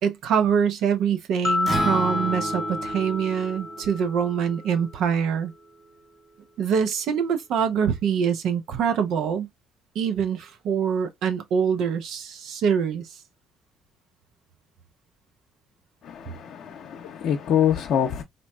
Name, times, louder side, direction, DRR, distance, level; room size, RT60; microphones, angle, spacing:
voice 1, 0.0-5.5 6.6-9.5 9.9-13.1, right 7 dB, 70° right, 0.7 m, -24 dB
sound 1, 1.4-4.6, left 3 dB, 15° left, 0.5 m, -29 dB
Acoustic guitar, 1.7-5.9, right 3 dB, 40° right, 1.6 m, -34 dB
voice 2, 16.0-18.2, left 9 dB, 70° left, 0.5 m, -25 dB
3.9 x 2.2 x 2.3 m
hypercardioid pair, 60°, 0 cm